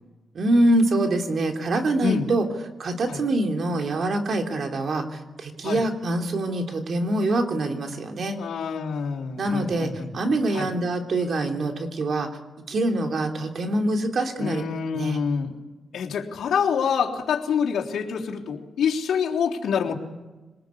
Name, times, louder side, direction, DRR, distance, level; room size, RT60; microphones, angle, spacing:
voice 1, 0.3-2.5 2.8-8.3 9.4-12.3 12.7-14.6 14.9-15.2, right 2 dB, 60° right, 4 dB, 3.4 m, -24 dB
voice 2, 8.4-10.1 10.5-10.6 14.4-15.5 15.9-19.9, left 7 dB, 85° left, -3 dB, 3.5 m, -26 dB
26.0 x 20.5 x 8.5 m, 1.2 s
cardioid pair, 80°, 0 cm